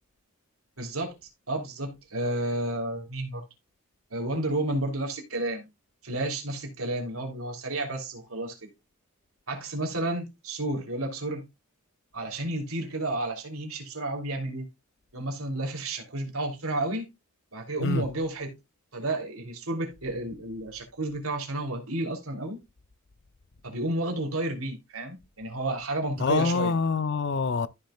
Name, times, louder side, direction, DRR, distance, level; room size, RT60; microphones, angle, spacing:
voice 1, 0.8-1.1 1.5-3.4 4.1-5.7 6.0-8.7 9.5-11.4 12.1-14.6 15.1-17.1 17.5-18.5 18.9-22.6 23.6-26.7, right 2 dB, 80° right, 3.1 m, -31 dB
voice 2, 26.2-27.7, left 4 dB, 55° left, 0.6 m, -25 dB
14.0 x 6.3 x 2.3 m
head